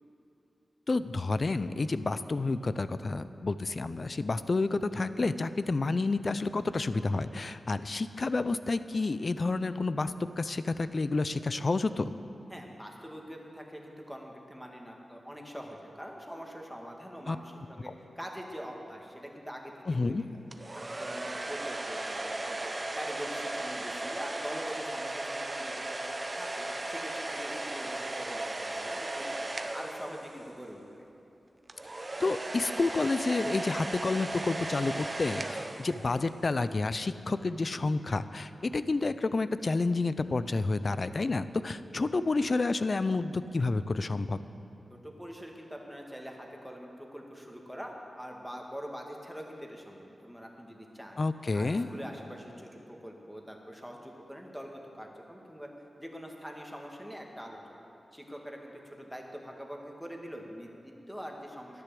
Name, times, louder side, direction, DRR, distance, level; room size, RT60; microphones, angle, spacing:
voice 1, 0.9-12.1 17.3-17.4 17.9-18.0 19.9-20.2 32.2-44.4 51.2-51.9, left 3 dB, 50° left, 13 dB, 0.5 m, -30 dB
voice 2, 12.5-17.9 18.2-20.4 21.0-29.4 29.7-31.1 44.9-51.2 51.5-55.7 56.0-57.8 58.1-58.7 59.0-61.8, equal, ahead, 0 dB, 2.0 m, -44 dB
sound 1, 20.5-30.6 31.7-36.4, right 2 dB, 30° right, 0.9 m, -36 dB
11.5 x 10.5 x 7.7 m, 3.0 s
cardioid pair, 65°, 0 cm